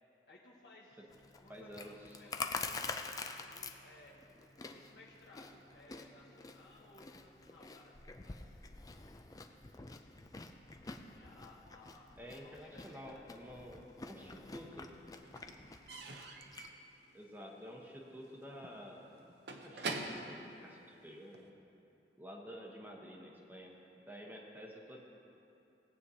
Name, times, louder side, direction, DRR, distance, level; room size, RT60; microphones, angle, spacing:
voice 1, 0.3-1.1 1.4-4.1 4.7-7.9 8.2-8.6 11.0-13.2, left 2 dB, 90° left, -5 dB, 1.2 m, -60 dB
Chewing mastication, 1.1-16.7, left 4 dB, 20° left, 0.4 m, -47 dB
voice 2, 1.5-1.9 12.2-14.9 17.1-19.2 19.6-21.5 22.2-23.7 24.0-25.0, equal, 10° right, -1 dB, 1.0 m, -50 dB
Slam / Squeak / Wood, 13.6-14.5 14.7-21.5, right 3 dB, 70° right, 0.8 m, -46 dB
17.5 x 8.3 x 2.8 m, 2.8 s
head